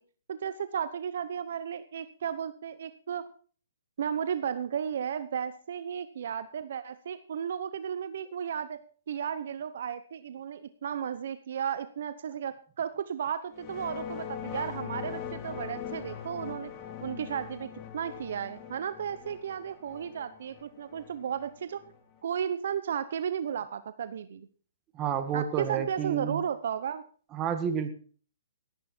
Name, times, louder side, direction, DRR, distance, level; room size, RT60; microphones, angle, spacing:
voice 1, 0.3-3.3 4.0-8.8 9.1-16.7 17.0-21.8 22.2-24.5 25.3-27.0, right 8 dB, 65° right, 13 dB, 0.9 m, -34 dB
sound 1, 13.5-22.2, left 9 dB, 30° left, 2.2 m, -41 dB
voice 2, 24.9-26.4 27.3-27.9, right 8 dB, 25° right, 8 dB, 1.8 m, -30 dB
18.0 x 10.0 x 4.5 m, 0.44 s
hypercardioid pair, 145°, 0 cm